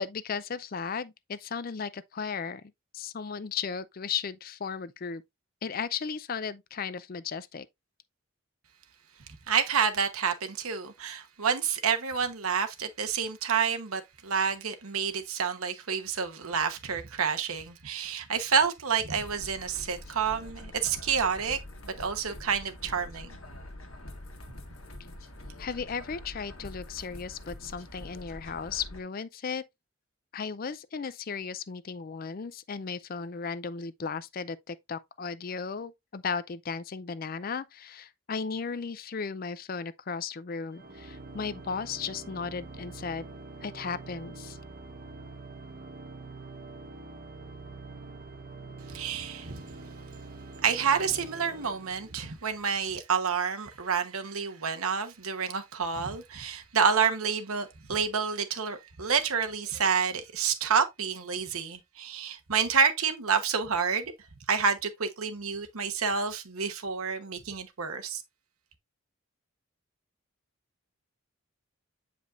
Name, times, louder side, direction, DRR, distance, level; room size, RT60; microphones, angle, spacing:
voice 1, 0.0-2.6 2.9-5.2 5.6-7.7 25.6-29.6 30.3-43.3 43.6-44.6, left 5 dB, 40° left, 0.4 m, -35 dB
voice 2, 9.5-21.6 21.8-23.4 48.9-49.6 50.6-64.1 64.5-68.2, right 6 dB, 85° right, 1.0 m, -29 dB
sound 1, 19.2-29.0, left 1 dB, 75° left, 1.5 m, -45 dB
Organ, 40.7-52.5, right 3 dB, 40° right, 1.1 m, -45 dB
8.1 x 5.0 x 2.5 m
head